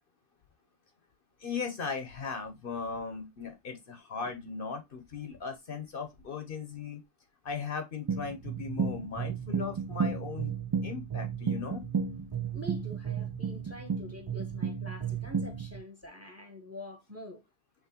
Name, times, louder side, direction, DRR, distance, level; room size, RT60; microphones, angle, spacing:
voice 1, 1.4-7.0 7.4-10.5 10.8-11.8, left 5 dB, 55° left, 0.9 m, -38 dB
sound 1, 8.1-15.8, right 6 dB, 45° right, 0.3 m, -33 dB
voice 2, 12.5-17.4, equal, 15° right, 0.9 m, -45 dB
5.9 x 3.1 x 2.8 m
omnidirectional pair, 1.2 m